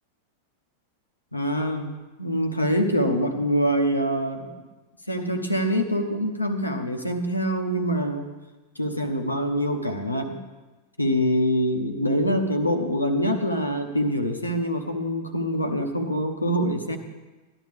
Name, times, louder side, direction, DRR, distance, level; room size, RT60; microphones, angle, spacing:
voice 1, 1.3-1.9 2.2-4.5 5.1-8.3 8.8-10.4 11.0-17.0, equal, 85° left, 5 dB, 1.0 m, -25 dB
14.0 x 11.0 x 3.5 m, 1.2 s
figure-of-eight pair, 90°, 0 cm